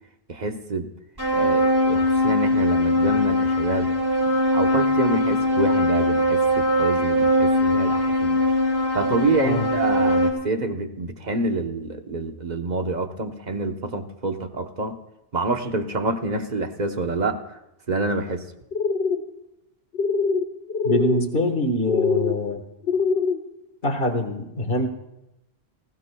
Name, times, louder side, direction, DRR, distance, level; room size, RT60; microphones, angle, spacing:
voice 1, 0.3-0.9 1.3-3.9 4.5-8.4 8.9-15.0 15.3-17.6 17.9-18.5, right 3 dB, 40° right, 5 dB, 1.1 m, -27 dB
sound 1, 1.2-10.3, left 1 dB, 20° right, 2.5 m, -21 dB
sound 2, 18.7-19.2 19.9-20.4 20.7-21.2 21.9-22.3 22.8-23.4, left 5 dB, 70° left, 1.1 m, -23 dB
voice 2, 20.8-22.6 23.8-24.9, left 1 dB, 55° left, 5 dB, 1.7 m, -24 dB
20.5 x 16.0 x 2.3 m, 0.89 s
omnidirectional pair, 1.1 m